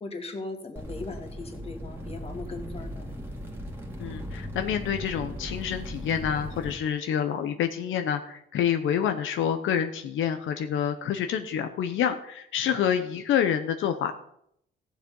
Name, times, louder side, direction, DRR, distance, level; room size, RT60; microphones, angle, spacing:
voice 1, 0.0-3.1 12.7-12.9, left 3 dB, 30° left, 4 dB, 2.1 m, -39 dB
sound 1, 0.8-6.8, equal, 10° right, 2.2 m, -38 dB
voice 2, 4.0-14.1, left 8 dB, 85° left, 7 dB, 1.0 m, -27 dB
15.5 x 7.4 x 5.5 m, 0.73 s
cardioid pair, 120°, 20 cm